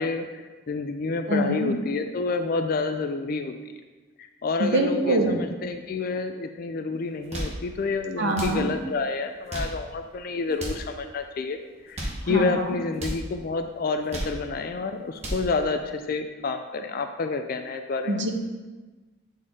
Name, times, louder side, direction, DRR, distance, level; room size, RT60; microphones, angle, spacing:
voice 1, 0.0-3.5 4.4-11.6 11.8-18.2, left 4 dB, 50° left, 7 dB, 0.4 m, -29 dB
voice 2, 1.3-1.7 4.6-5.4 8.2-8.7 12.3-12.7 18.1-18.3, right 1 dB, 65° right, 3 dB, 0.8 m, -24 dB
sound 1, 7.1-7.6 8.3-8.6 9.3-9.8 10.5-10.9 11.7-12.2 12.9-13.2 13.9-14.4 15.0-15.5, right 1 dB, 35° right, 1.0 m, -33 dB
8.1 x 4.1 x 3.7 m, 1.3 s
head